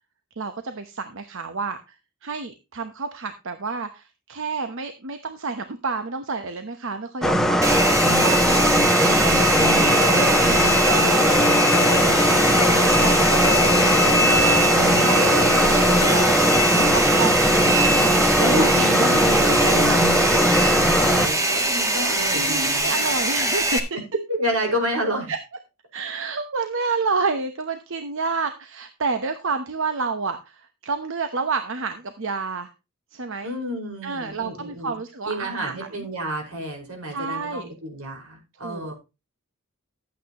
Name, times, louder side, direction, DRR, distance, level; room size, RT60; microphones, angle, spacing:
voice 1, 0.4-2.0 2.2-7.8 8.1-10.1 10.3-11.9 12.3-14.3 14.7-17.5 17.9-18.7 22.3-24.0 25.3-25.4 25.9-32.7 33.1-33.5 34.0-36.1 37.1-37.7 38.6-38.9, right 4 dB, 60° right, 8 dB, 0.9 m, -30 dB
sound 1, 7.2-21.3, equal, ahead, 0.9 m, -19 dB
Domestic sounds home sounds, 7.6-23.8, right 1 dB, 15° right, 1.6 m, -22 dB
sound 2, 9.4-16.2, left 5 dB, 80° left, 0.9 m, -29 dB
voice 2, 16.7-17.2 18.4-22.9 24.3-25.3 33.4-34.9 35.3-38.9, equal, 85° right, 1 dB, 5.0 m, -30 dB
12.5 x 8.7 x 2.9 m, 0.27 s
head